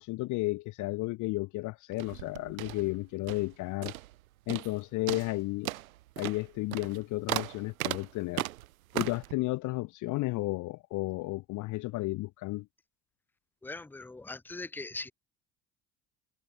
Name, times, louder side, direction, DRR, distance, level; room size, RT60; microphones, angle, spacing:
voice 1, 0.0-3.9 4.5-5.7 6.2-8.5 8.9-12.7, left 21 dB, 50° left, 0.5 m, -33 dB
sound 1, 1.9-3.5 3.8-4.2 4.5-4.8 5.1-9.3, right 16 dB, 85° right, 0.5 m, -37 dB
voice 2, 13.6-15.1, left 3 dB, 5° left, 0.7 m, -40 dB
hypercardioid pair, 65°, 40 cm